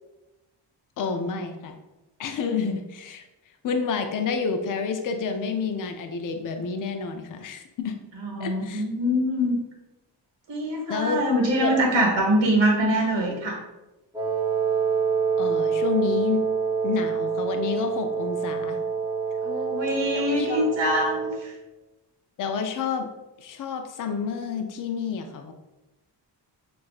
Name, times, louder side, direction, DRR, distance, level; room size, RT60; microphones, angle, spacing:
voice 1, 1.0-1.8 2.2-3.2 3.6-8.0 8.4-8.8 10.9-11.3 11.6-11.8 15.4-16.5 16.8-18.8 20.1-20.7 22.4-23.1 23.4-25.5, left 5 dB, 50° left, 6 dB, 0.4 m, -29 dB
voice 2, 8.3-9.6 10.5-13.6 19.4-21.5, equal, 85° right, 0 dB, 1.2 m, -24 dB
Wind instrument woodwind instrument, 14.1-21.5, right 5 dB, 10° right, 0.5 m, -26 dB
5.9 x 2.5 x 2.4 m, 1.0 s
wide cardioid pair, 135°, 43 cm